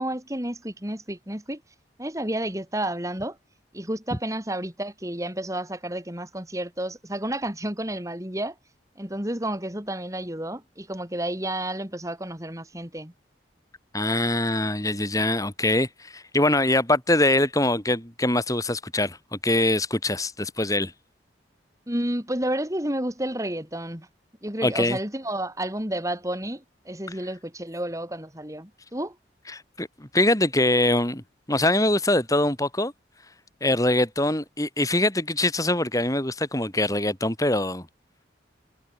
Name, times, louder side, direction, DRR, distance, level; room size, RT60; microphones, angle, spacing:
voice 1, 0.0-1.6 2.0-3.4 3.7-8.6 9.0-13.1 21.9-24.1 24.4-29.2, right 1 dB, 15° right, 3.9 m, -31 dB
voice 2, 13.9-20.9 24.6-25.0 29.5-31.2 31.5-32.9 33.6-37.8, left 1 dB, 20° left, 4.3 m, -23 dB
head